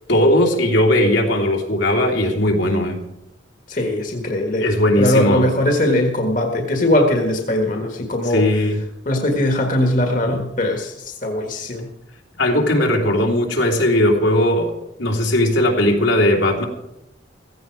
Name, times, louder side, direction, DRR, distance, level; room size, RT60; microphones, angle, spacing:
voice 1, 0.1-3.0 4.6-5.5 8.2-8.8 12.4-14.7 15.0-16.6, left 1 dB, 80° left, 1 dB, 3.1 m, -18 dB
voice 2, 3.7-4.6 5.0-8.4 9.0-11.9, left 1 dB, 45° left, 2 dB, 1.7 m, -20 dB
16.0 x 15.0 x 4.7 m, 0.87 s
head